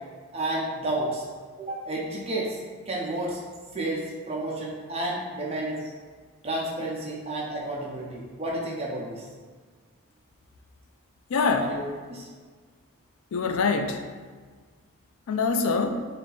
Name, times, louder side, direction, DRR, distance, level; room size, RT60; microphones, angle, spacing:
voice 1, 0.3-1.3 1.6-2.6 2.9-3.4 3.7-5.8 6.4-9.2 11.6-11.8 12.1-12.3, right 1 dB, 30° right, -4 dB, 0.7 m, -31 dB
voice 2, 11.3-11.8 13.3-14.1 15.3-16.1, left 4 dB, 75° left, 6 dB, 0.4 m, -24 dB
3.4 x 2.8 x 4.0 m, 1.5 s
head